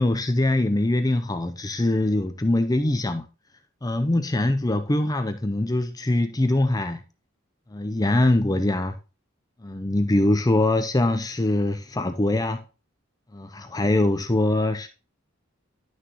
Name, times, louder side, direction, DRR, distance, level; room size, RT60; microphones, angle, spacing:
voice 1, 0.0-3.3 3.8-7.0 7.7-9.0 9.6-12.6 13.3-14.9, left 1 dB, 20° left, 0.6 m, -23 dB
11.5 x 6.4 x 3.0 m
head